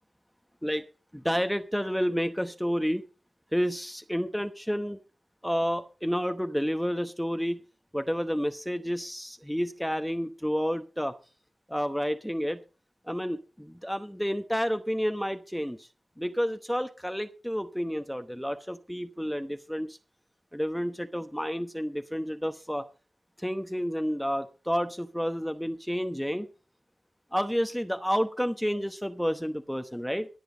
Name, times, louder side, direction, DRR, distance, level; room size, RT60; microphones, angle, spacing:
voice 1, 1.1-3.0 3.5-5.0 5.4-7.6 7.9-11.1 11.7-12.6 13.0-15.9 16.2-20.0 20.5-22.9 23.4-26.5 27.3-30.3, equal, ahead, 8 dB, 0.9 m, -30 dB
22.5 x 7.9 x 3.9 m, 0.34 s
wide cardioid pair, 85°, 0 cm